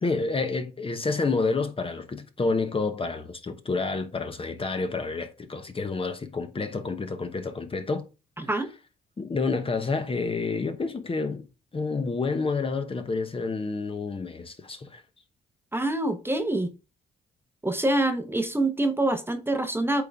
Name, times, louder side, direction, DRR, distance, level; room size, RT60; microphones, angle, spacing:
voice 1, 0.0-8.1 8.4-8.5 9.2-11.5 11.7-15.0, left 4 dB, 25° left, 1.0 m, -29 dB
voice 2, 8.4-8.7 15.7-16.7 17.6-20.0, right 1 dB, 10° right, 0.9 m, -25 dB
8.3 x 3.8 x 3.5 m
cardioid pair, 90°, 20 cm